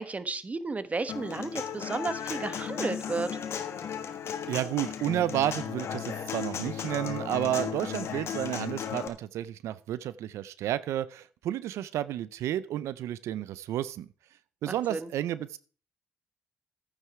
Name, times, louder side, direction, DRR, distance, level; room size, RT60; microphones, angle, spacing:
voice 1, 0.0-3.3 14.6-15.1, right 3 dB, 30° right, 13 dB, 1.1 m, -33 dB
Human voice / Acoustic guitar, 1.1-9.1, left 8 dB, 65° left, 1.4 m, -35 dB
voice 2, 4.5-14.1 14.6-15.6, right 12 dB, 85° right, 17 dB, 0.5 m, -31 dB
11.5 x 9.2 x 4.7 m, 0.40 s
cardioid pair, 70°, 5 cm